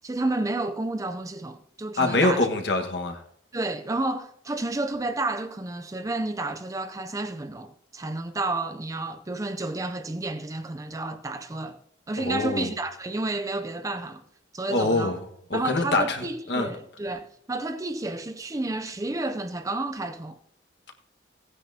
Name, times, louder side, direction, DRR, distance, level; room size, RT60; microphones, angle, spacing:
voice 1, 0.0-2.5 3.5-11.8 12.1-14.2 14.5-15.2 15.5-20.4, right 2 dB, 15° right, 0.5 m, -31 dB
voice 2, 2.0-3.2 12.2-12.7 14.7-15.2 15.5-16.7, left 2 dB, 60° left, 1.5 m, -24 dB
16.5 x 9.8 x 2.8 m
head